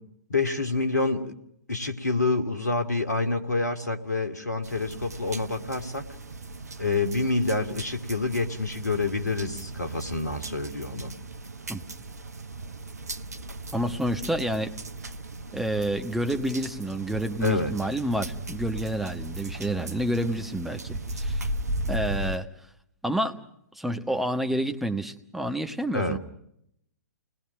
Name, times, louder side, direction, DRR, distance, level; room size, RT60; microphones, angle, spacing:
voice 1, 0.3-1.3 1.7-6.1 6.8-11.1 17.4-17.7 25.9-26.2, left 3 dB, 75° left, 6 dB, 2.5 m, -27 dB
sound 1, 4.6-22.4, right 2 dB, 70° right, 1.1 m, -37 dB
voice 2, 13.7-14.7 15.5-21.5 21.9-22.5 23.0-23.4 23.8-26.2, right 1 dB, ahead, 6 dB, 1.3 m, -29 dB
29.5 x 20.5 x 6.2 m, 0.75 s
figure-of-eight pair, 115°, 9 cm